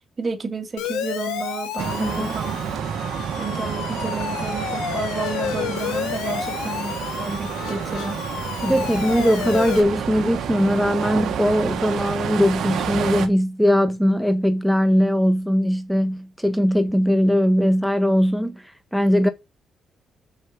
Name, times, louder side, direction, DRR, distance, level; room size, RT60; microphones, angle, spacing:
voice 1, 0.2-2.6 3.4-8.2, right 4 dB, 45° right, 2.5 m, -31 dB
Siren, 0.8-9.8, left 9 dB, 85° left, 1.5 m, -30 dB
sound 1, 1.8-13.3, right 8 dB, 75° right, 1.5 m, -29 dB
voice 2, 2.0-2.3 6.3-6.4 8.6-18.6 18.9-19.3, equal, ahead, 1.6 m, -20 dB
6.4 x 5.9 x 6.1 m
supercardioid pair, 55°, 0 cm